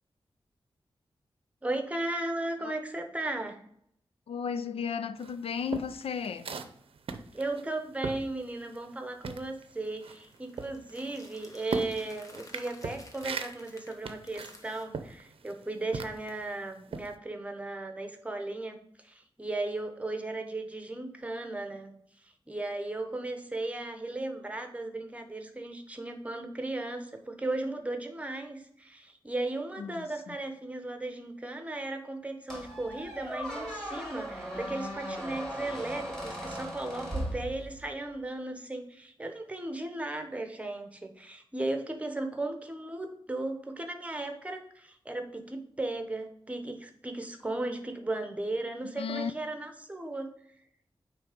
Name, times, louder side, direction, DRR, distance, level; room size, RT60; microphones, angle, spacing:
voice 1, 1.6-3.6 7.3-18.8 19.0-21.9 22.5-50.3, right 2 dB, 15° right, 0.9 m, -36 dB
voice 2, 4.3-6.5 29.8-30.4 48.9-49.3, left 7 dB, 85° left, 0.5 m, -34 dB
sound 1, 5.2-9.0 9.2-16.4 16.9-17.1, right 5 dB, 75° right, 0.6 m, -39 dB
sound 2, 9.8-14.8, left 2 dB, 35° left, 1.0 m, -54 dB
Squeak, 32.5-38.0, equal, 5° left, 1.7 m, -38 dB
9.1 x 3.3 x 5.0 m
wide cardioid pair, 165°, 10 cm